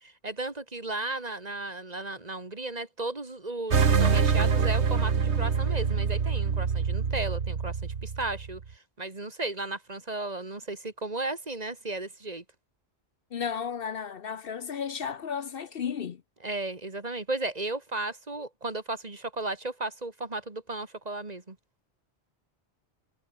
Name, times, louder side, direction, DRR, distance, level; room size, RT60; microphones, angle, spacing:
voice 1, 0.0-12.4 16.4-21.6, right 2 dB, 35° right, 2.3 m, -35 dB
sound 1, 3.7-8.6, right 6 dB, 85° right, 1.8 m, -25 dB
voice 2, 13.3-16.2, left 7 dB, 60° left, 0.9 m, -33 dB
omnidirectional pair, 1.1 m